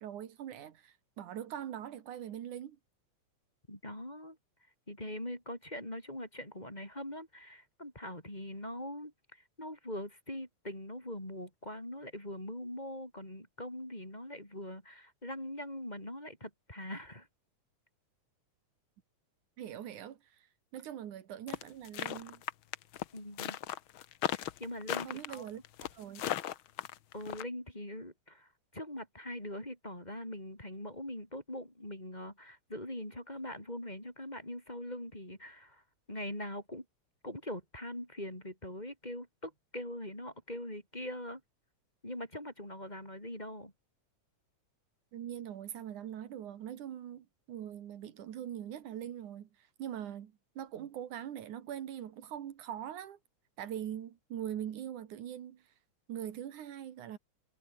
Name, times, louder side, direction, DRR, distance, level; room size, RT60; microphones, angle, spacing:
voice 1, 0.0-2.8 19.6-20.5 20.7-22.4 25.0-25.6 25.9-26.2 45.1-49.5 49.8-53.2 53.6-55.6 56.1-57.2, right 10 dB, 80° right, 3.1 m, -42 dB
voice 2, 3.7-4.4 4.9-17.3 23.1-23.6 24.3-25.5 27.1-35.8 36.1-36.8 37.2-41.4 42.0-43.7, left 1 dB, 15° left, 5.0 m, -42 dB
sound 1, 21.5-27.4, left 12 dB, 70° left, 1.2 m, -36 dB
omnidirectional pair, 3.5 m